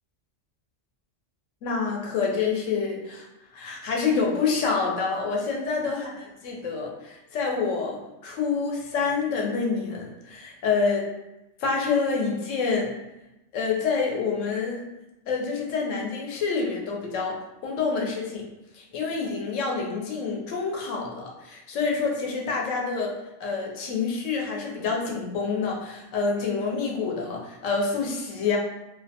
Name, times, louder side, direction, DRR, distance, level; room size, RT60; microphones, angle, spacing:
voice 1, 1.6-3.3 3.5-11.0 11.6-12.9 13.5-14.8 15.3-17.4 17.6-18.4 18.7-23.1 23.4-28.6, left 4 dB, 90° left, -1 dB, 1.0 m, -27 dB
2.4 x 2.1 x 2.7 m, 0.95 s
omnidirectional pair, 1.3 m